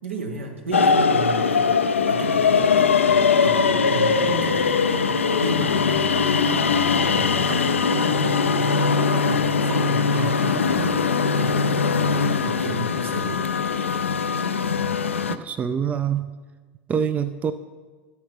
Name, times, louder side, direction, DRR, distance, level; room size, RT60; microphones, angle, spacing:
voice 1, 0.0-1.7 2.0-13.4, right 2 dB, 75° right, 3 dB, 1.4 m, -33 dB
sound 1, 0.7-15.3, left 5 dB, 80° left, 0.4 m, -21 dB
voice 2, 15.3-16.3 16.9-17.5, right 7 dB, 20° right, 12 dB, 0.4 m, -25 dB
14.0 x 8.4 x 3.5 m, 1.4 s
figure-of-eight pair, 80°, 7 cm